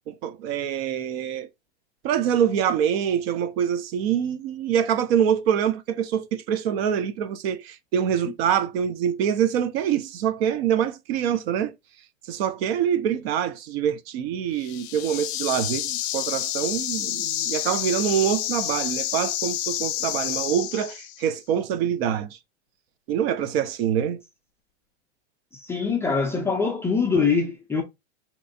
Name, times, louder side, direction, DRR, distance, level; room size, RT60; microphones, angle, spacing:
voice 1, 0.0-1.5 2.0-11.7 12.3-22.4 23.1-24.2, right 9 dB, 60° right, 0.6 m, -25 dB
sound 1, 14.6-21.3, left 13 dB, 65° left, 0.6 m, -29 dB
voice 2, 25.6-27.8, left 5 dB, 10° left, 0.3 m, -23 dB
3.3 x 3.0 x 2.6 m
hypercardioid pair, 125°, 35 cm